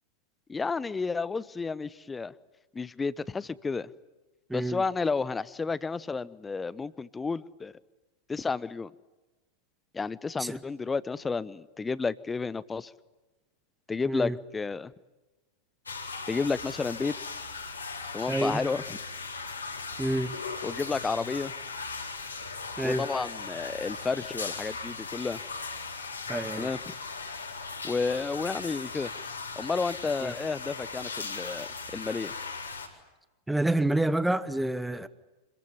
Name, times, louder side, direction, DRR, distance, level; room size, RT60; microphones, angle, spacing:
voice 1, 0.5-2.3 2.7-3.9 4.5-7.7 8.3-8.9 9.9-12.9 13.9-14.9 16.3-17.2 18.1-19.0 20.6-21.5 22.8-25.4 26.6-26.9 27.8-29.1 29.6-32.3, left 4 dB, 15° left, 19 dB, 0.8 m, -31 dB
voice 2, 4.5-4.8 10.4-10.6 14.1-14.4 18.3-18.6 20.0-20.4 22.8-23.0 26.3-26.7 30.2-30.3 33.5-35.1, right 1 dB, 5° right, 15 dB, 1.2 m, -28 dB
sound 1, 15.9-32.9, left 4 dB, 80° left, 3.9 m, -38 dB
26.0 x 22.0 x 9.6 m, 1.1 s
figure-of-eight pair, 90°, 0 cm